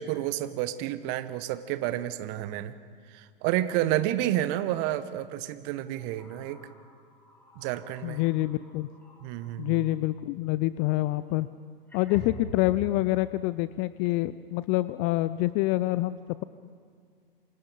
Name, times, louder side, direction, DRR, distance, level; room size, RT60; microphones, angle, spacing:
voice 1, 0.0-2.8 3.1-6.7 7.6-8.2 9.2-9.9, right 13 dB, 40° right, 13 dB, 1.1 m, -30 dB
sound 1, 2.3-2.4 2.8-3.0 4.8-5.0 5.8-10.1 11.3-11.4 11.9-13.0, left 1 dB, 5° left, 6.7 m, -47 dB
voice 2, 8.0-8.9 9.6-11.5 11.9-16.4, left 17 dB, 30° left, 15 dB, 0.4 m, -27 dB
28.0 x 25.5 x 3.9 m, 2.1 s
figure-of-eight pair, 100°, 29 cm